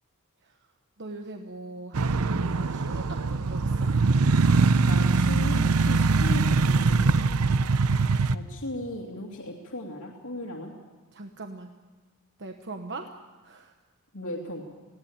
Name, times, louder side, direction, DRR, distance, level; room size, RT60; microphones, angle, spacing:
voice 1, 1.0-3.9 7.2-7.6 11.1-11.7 12.4-13.2 13.4-13.7, right 2 dB, 55° right, 5 dB, 1.2 m, -41 dB
sound 1, 1.9-8.4, right 4 dB, 75° right, 0.7 m, -22 dB
voice 2, 4.9-7.1 8.3-10.7 14.1-14.6, left 1 dB, 70° left, -3 dB, 2.5 m, -37 dB
20.0 x 17.0 x 8.7 m, 1.3 s
head